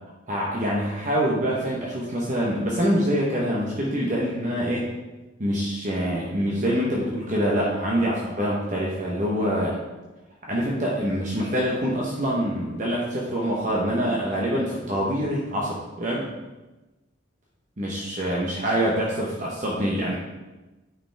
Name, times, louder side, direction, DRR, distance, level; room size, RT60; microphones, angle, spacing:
voice 1, 0.3-4.9 5.4-9.8 10.5-16.3 17.8-20.2, equal, 40° right, -4 dB, 1.0 m, -25 dB
9.1 x 5.0 x 3.4 m, 1.1 s
head